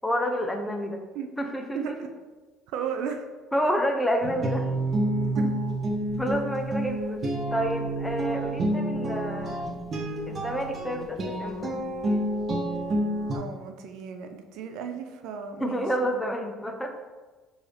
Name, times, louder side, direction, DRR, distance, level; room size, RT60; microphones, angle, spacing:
voice 1, 0.0-1.0 1.4-2.0 3.5-4.7 6.2-9.7 10.3-11.7 15.6-16.9, equal, 10° left, 4 dB, 0.6 m, -29 dB
voice 2, 1.7-2.1 2.7-3.2 5.4-5.5 13.3-16.1, right 7 dB, 70° right, 6 dB, 0.4 m, -35 dB
sound 1, 4.2-13.4, right 1 dB, 40° right, 0.7 m, -29 dB
4.7 x 2.6 x 3.3 m, 1.3 s
supercardioid pair, 75°, 0 cm